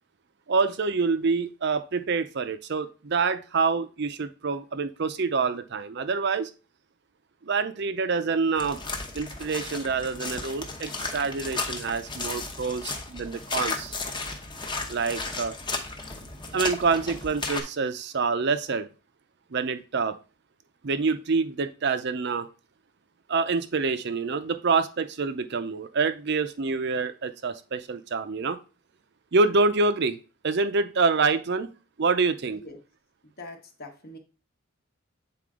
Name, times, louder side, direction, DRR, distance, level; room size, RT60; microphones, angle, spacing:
voice 1, 0.5-6.5 7.4-8.8 9.1-13.9 14.9-15.5 16.5-18.9 19.5-20.2 20.8-22.5 23.3-28.6 29.3-30.2 30.4-31.7 32.0-32.6, right 4 dB, 55° right, 0.5 m, -26 dB
sound 1, 8.6-17.6, left 3 dB, 20° left, 0.8 m, -34 dB
voice 2, 33.2-34.2, left 2 dB, 45° left, 1.1 m, -43 dB
7.7 x 4.2 x 3.7 m
head